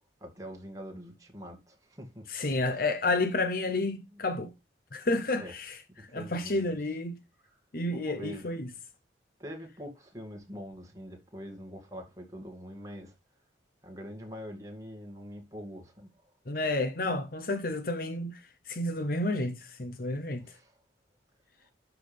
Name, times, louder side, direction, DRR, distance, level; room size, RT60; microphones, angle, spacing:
voice 1, 0.2-2.2 2.6-2.8 4.1-4.2 5.4-5.5 6.0-7.0 7.4-7.5 7.9-8.5 9.4-13.1 13.8-16.1 20.4-20.7, equal, 20° right, 2.3 m, -44 dB
voice 2, 2.3-4.5 4.9-5.8 6.1-7.2 7.7-8.7 16.5-18.4 18.7-20.4, left 2 dB, 50° left, 0.8 m, -30 dB
11.5 x 5.9 x 3.5 m
head